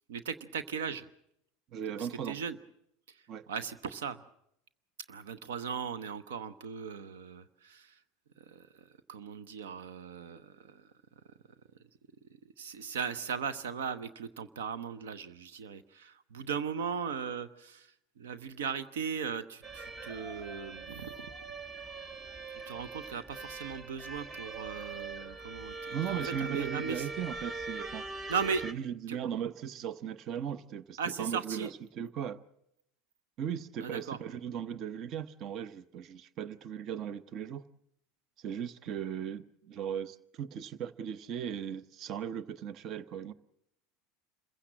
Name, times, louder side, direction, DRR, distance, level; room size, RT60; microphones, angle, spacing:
voice 1, 0.1-1.1 2.0-2.6 3.1-4.2 5.1-8.0 8.4-10.9 12.6-21.2 22.5-27.1 28.3-28.6 29.1-29.2 31.0-31.7 33.8-34.2, right 6 dB, 80° right, 0.8 m, -38 dB
voice 2, 1.7-2.4 3.3-3.5 25.9-28.1 28.6-31.7 31.9-32.4 33.4-37.6 38.4-43.3, right 8 dB, 50° right, 0.8 m, -37 dB
sound 1, 19.6-28.7, right 3 dB, 20° right, 1.0 m, -42 dB
27.0 x 16.0 x 7.5 m
hypercardioid pair, 80°, 0 cm